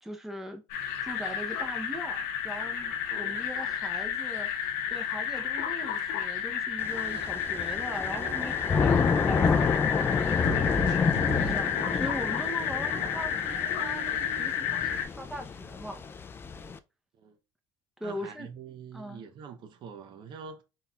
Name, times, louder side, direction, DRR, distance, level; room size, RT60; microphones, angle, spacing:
voice 1, 0.0-0.6 1.0-10.3 11.3-16.0 18.0-18.5 18.9-19.2, equal, 5° right, 0.8 m, -40 dB
sound 1, 0.7-15.1, left 8 dB, 85° left, 1.0 m, -31 dB
voice 2, 3.1-3.5 17.2-17.4 18.0-20.6, right 6 dB, 50° right, 0.9 m, -45 dB
Thunder / Rain, 6.8-16.8, left 5 dB, 25° left, 0.4 m, -29 dB
sound 2, 6.9-7.7 7.9-9.6 10.4-14.5, right 10 dB, 85° right, 0.4 m, -43 dB
4.1 x 3.9 x 2.4 m
supercardioid pair, 110°, 10 cm